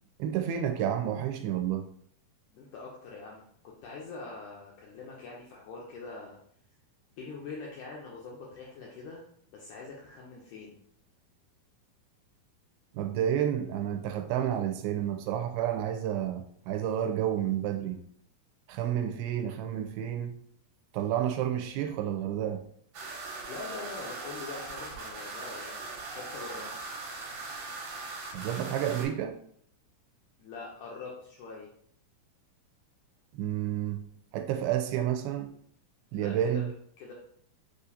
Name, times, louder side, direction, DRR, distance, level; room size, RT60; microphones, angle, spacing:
voice 1, 0.2-1.9 12.9-18.0 18.7-20.4 20.9-22.6 28.3-29.4 33.3-34.1 34.3-35.5 36.1-36.7, right 10 dB, 90° right, 6 dB, 2.4 m, -30 dB
voice 2, 2.5-6.4 7.2-9.2 9.5-10.8 23.4-27.0 30.4-31.7 36.2-36.6 37.0-37.1, left 4 dB, 85° left, -3 dB, 1.8 m, -43 dB
sound 1, 22.9-29.1, right 3 dB, 70° right, 2.4 m, -40 dB
6.6 x 2.5 x 2.7 m, 0.63 s
omnidirectional pair, 4.3 m